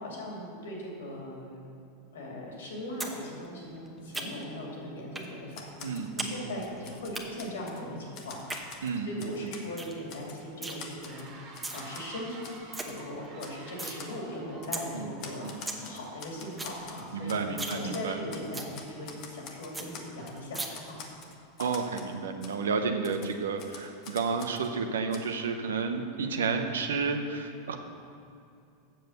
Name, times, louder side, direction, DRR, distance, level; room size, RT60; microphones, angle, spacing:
voice 1, 0.0-1.6 2.1-8.7 9.0-12.5 12.8-21.0, left 1 dB, 80° left, -2 dB, 2.6 m, -39 dB
sound 1, 3.0-3.2 3.4-4.6 5.1-5.3 5.6-6.3 6.6-7.2 8.3-8.6 9.1-9.2 9.5-9.6 9.8-10.0 10.2-10.8 11.4-11.8 12.2-12.3 12.5-12.8 13.2-14.0 14.3-14.4 14.7-14.8 15.2-15.3 15.5-15.8 16.1-16.2 16.4-16.8 17.1-17.2 17.5-17.8 18.1-18.2 18.5-18.7 19.1-19.2 19.4-19.5 19.7-19.9 20.5-20.7, right 2 dB, 10° right, 1.1 m, -36 dB
sound 2, 4.8-4.9 5.3-21.2, right 3 dB, 55° right, 1.9 m, -53 dB
Typewriter, 5.5-6.1 6.5-7.8 8.1-9.7 10.1-10.4 10.8-12.1 12.4-12.6 12.9-13.0 13.4-13.6 13.8-14.1 14.6-14.8 15.2-17.4 17.7-18.5 18.7-20.4 20.7-22.1 22.4-22.5 23.0-24.7 25.1-25.2, left 6 dB, 50° left, 1.2 m, -46 dB
voice 2, 5.8-6.6 8.8-9.5 14.9-15.1 15.4-15.6 17.1-18.2 21.6-27.8, right 4 dB, 80° right, 6 dB, 0.7 m, -31 dB
7.6 x 7.0 x 6.6 m, 2.6 s
hypercardioid pair, 95°, 0 cm